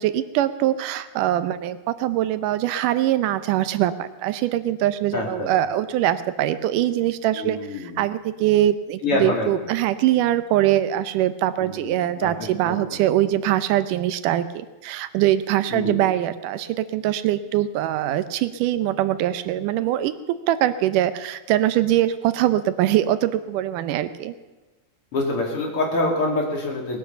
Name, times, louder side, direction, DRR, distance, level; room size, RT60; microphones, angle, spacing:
voice 1, 0.0-20.2 20.5-24.3, right 13 dB, 90° right, 13 dB, 2.3 m, -22 dB
voice 2, 5.1-5.5 7.3-8.0 9.0-9.5 11.6-12.8 15.7-16.0 25.1-27.0, left 2 dB, 45° left, 0 dB, 3.3 m, -26 dB
19.5 x 9.0 x 6.8 m, 1.2 s
omnidirectional pair, 3.6 m